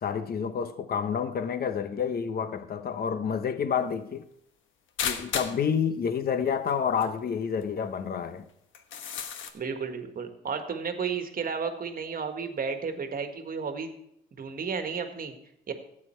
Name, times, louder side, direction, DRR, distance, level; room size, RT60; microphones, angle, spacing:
voice 1, 0.0-4.2 5.0-8.5, left 7 dB, 50° left, 0.9 m, -29 dB
sound 1, 5.0-5.6 6.7-6.8 7.0-7.1 7.6-7.7 8.7-9.5, left 7 dB, 75° left, 1.2 m, -32 dB
voice 2, 9.5-13.9 14.3-15.3 15.7-15.8, right 5 dB, 45° right, 1.6 m, -33 dB
12.0 x 8.7 x 4.5 m
cardioid pair, 90°, 20 cm